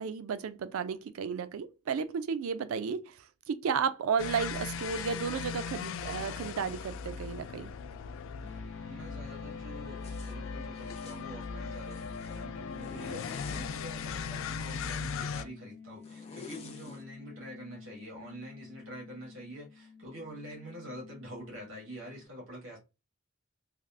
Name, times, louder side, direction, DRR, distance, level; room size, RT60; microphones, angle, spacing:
voice 1, 0.0-3.2 3.5-7.7, right 6 dB, 85° right, 0.4 m, -33 dB
sound 1, 4.2-15.4, left 5 dB, 65° left, 0.3 m, -38 dB
sound 2, 8.4-22.3, left 5 dB, 35° right, 1.3 m, -50 dB
voice 2, 8.4-22.8, right 1 dB, 65° right, 1.6 m, -46 dB
Zipper (clothing), 10.0-10.3 10.8-11.2 11.7-12.4 12.8-13.7 14.4-15.2 16.0-17.0, left 4 dB, 30° left, 0.6 m, -49 dB
3.3 x 2.4 x 2.5 m
head